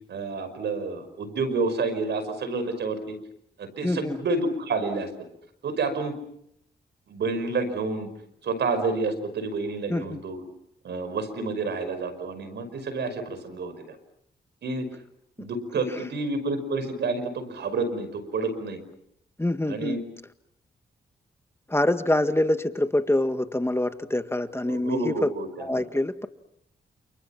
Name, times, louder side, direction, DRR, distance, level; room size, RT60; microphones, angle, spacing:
voice 1, 0.1-3.2 3.6-5.1 5.6-6.2 7.1-8.1 8.4-10.4 10.8-14.0 14.6-14.9 15.4-18.8 19.7-20.0 24.7-25.9, right 3 dB, 75° right, 10 dB, 5.5 m, -29 dB
voice 2, 3.8-4.2 9.9-10.2 15.4-15.5 15.7-15.8 19.4-20.0 21.7-25.3 25.6-26.3, left 1 dB, 15° left, 9 dB, 1.8 m, -25 dB
30.0 x 29.0 x 5.9 m, 0.75 s
cardioid pair, 55°, 18 cm